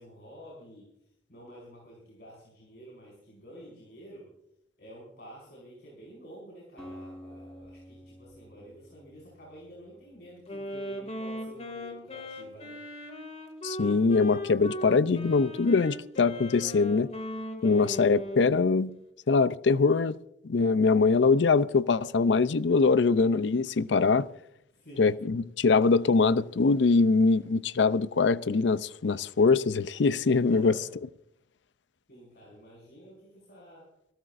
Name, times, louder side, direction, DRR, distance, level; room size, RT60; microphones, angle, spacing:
voice 1, 0.0-4.3 4.8-12.8 17.6-17.9 24.7-25.2 30.5-30.9 32.1-34.0, equal, 60° left, 5.5 m, -49 dB
Acoustic guitar, 6.8-10.9, equal, 5° left, 4.6 m, -49 dB
Wind instrument woodwind instrument, 10.5-18.7, equal, 35° left, 2.5 m, -38 dB
voice 2, 13.6-17.1 17.6-18.9 19.3-20.1 20.4-24.3 25.0-30.7, left 4 dB, 80° left, 0.5 m, -23 dB
27.0 x 13.5 x 2.6 m
head